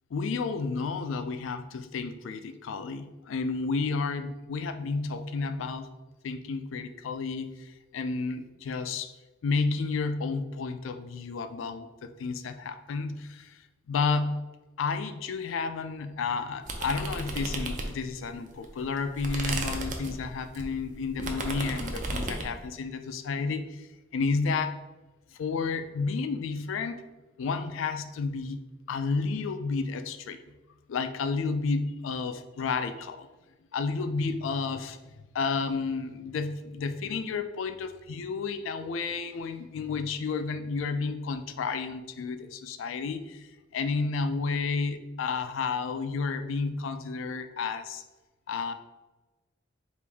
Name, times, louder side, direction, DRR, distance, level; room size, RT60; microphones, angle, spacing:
voice 1, 0.1-5.9 6.2-9.1 9.4-13.6 13.9-14.5 14.8-23.9 24.1-24.8 25.3-27.0 27.4-28.6 28.9-30.4 30.9-33.3 33.7-35.0 35.3-48.0 48.5-48.7, left 4 dB, 85° left, 9 dB, 0.3 m, -31 dB
sound 1, 16.7-18.2 18.6-22.5, right 2 dB, 40° right, 0.5 m, -34 dB
4.9 x 2.6 x 3.4 m, 1.1 s
head